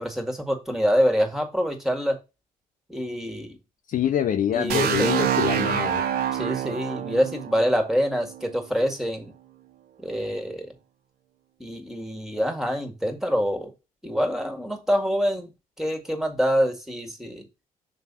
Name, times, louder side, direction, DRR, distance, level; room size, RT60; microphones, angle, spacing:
voice 1, 0.0-2.2 2.9-3.6 4.5-5.1 6.3-9.3 10.0-10.7 11.6-13.7 14.0-15.5 15.8-17.4, equal, ahead, 2.3 m, -25 dB
voice 2, 3.9-6.0, left 9 dB, 55° left, 0.7 m, -25 dB
sound 1, 4.7-8.5, right 9 dB, 70° right, 0.8 m, -26 dB
6.3 x 3.4 x 5.7 m
hypercardioid pair, 50°, 17 cm